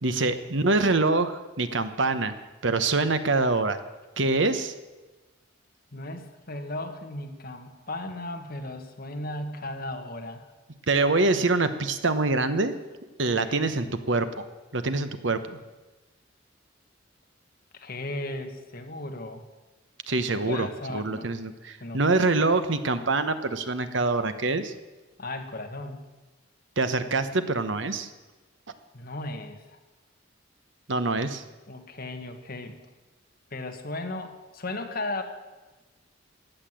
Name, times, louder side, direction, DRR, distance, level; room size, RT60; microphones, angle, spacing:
voice 1, 0.0-2.3 2.6-3.8 4.2-4.7 10.9-12.7 13.2-14.4 14.7-15.6 20.1-24.7 26.8-28.1 30.9-31.4, right 3 dB, 65° right, 10 dB, 1.1 m, -25 dB
voice 2, 5.9-10.5 13.2-13.7 17.7-19.4 20.4-21.3 21.8-22.0 25.2-26.0 28.9-29.8 31.7-32.8 33.5-35.2, left 2 dB, 50° left, 5 dB, 1.6 m, -36 dB
15.5 x 9.8 x 7.6 m, 1.2 s
head